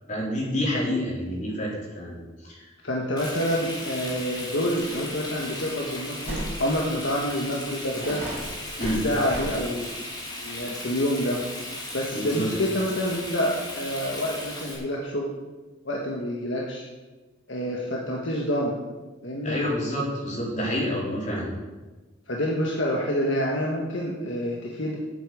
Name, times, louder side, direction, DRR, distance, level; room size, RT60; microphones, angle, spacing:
voice 1, 0.1-2.7 8.8-9.0 12.1-12.5 19.4-21.5, equal, 35° left, -6 dB, 4.5 m, -28 dB
voice 2, 2.8-8.2 8.8-9.9 10.4-11.4 11.9-15.3 15.9-16.9 17.5-18.8 19.2-19.6 22.3-25.0, equal, 65° left, -2 dB, 1.6 m, -27 dB
Frying (food), 3.2-14.7, left 1 dB, 20° left, 2.8 m, -37 dB
sound 1, 4.7-4.9 5.2-5.3 6.3-6.5 7.3-7.4 8.0-9.5, right 1 dB, 35° right, 4.8 m, -34 dB
8.8 x 8.3 x 8.7 m, 1.2 s
head